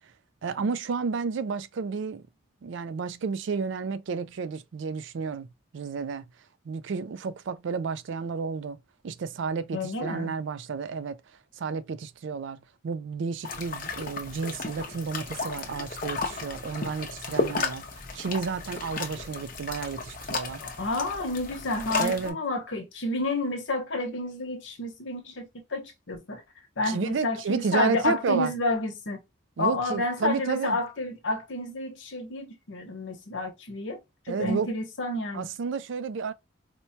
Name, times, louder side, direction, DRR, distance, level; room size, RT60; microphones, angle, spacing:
voice 1, 0.4-2.2 2.6-5.5 5.7-6.3 6.7-8.8 9.0-11.2 11.6-17.8 18.1-20.6 22.0-22.4 26.8-28.5 29.6-30.8 34.3-34.7 35.3-36.3, right 5 dB, 65° right, 0.3 m, -31 dB
voice 2, 9.7-10.3 20.6-26.4 26.8-29.2 29.6-34.0 34.3-35.5, left 2 dB, 65° left, 0.9 m, -30 dB
sound 1, 13.4-22.3, left 3 dB, 40° left, 0.7 m, -34 dB
4.4 x 2.2 x 2.6 m
head